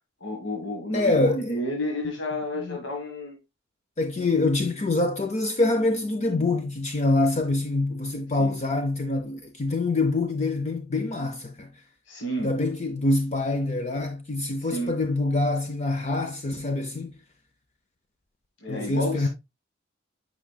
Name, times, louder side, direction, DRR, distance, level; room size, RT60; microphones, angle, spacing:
voice 1, 0.2-3.4 8.4-8.6 12.1-12.5 14.6-14.9 18.6-19.3, left 1 dB, 65° left, 1.6 m, -31 dB
voice 2, 0.9-1.6 2.6-2.8 4.0-11.7 12.4-17.2 18.7-19.3, left 2 dB, 35° left, 0.6 m, -25 dB
8.7 x 5.0 x 2.3 m
head